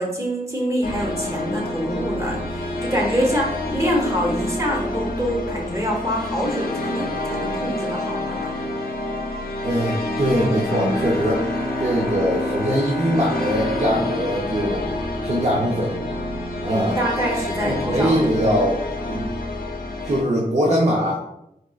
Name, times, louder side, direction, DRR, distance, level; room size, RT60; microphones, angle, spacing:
voice 1, 0.0-8.5 16.7-18.2, equal, 20° right, -2 dB, 0.9 m, -25 dB
sound 1, 0.8-20.2, left 1 dB, 75° left, 0.5 m, -28 dB
voice 2, 9.6-11.4 11.8-14.8 15.2-16.0 16.6-17.0 17.7-19.2 20.0-21.2, equal, 45° right, -4 dB, 0.6 m, -22 dB
Bowed string instrument, 10.6-15.8, left 2 dB, 10° left, 0.6 m, -29 dB
4.2 x 2.4 x 2.4 m, 0.83 s
wide cardioid pair, 80°, 15 cm